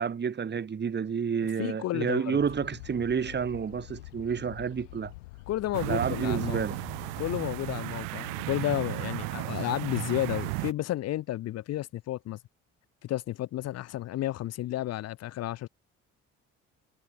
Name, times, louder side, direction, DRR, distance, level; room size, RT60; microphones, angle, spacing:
voice 1, 0.0-5.1 5.9-6.8, right 6 dB, 30° right, 1.3 m, -30 dB
voice 2, 1.6-2.4 5.5-6.6 7.2-12.4 13.0-15.7, left 14 dB, 45° left, 0.6 m, -32 dB
sound 1, 2.4-7.7, left 22 dB, 75° left, 4.4 m, -46 dB
sound 2, 5.7-10.7, right 35 dB, 70° right, 1.0 m, -34 dB
figure-of-eight pair, 50°, 36 cm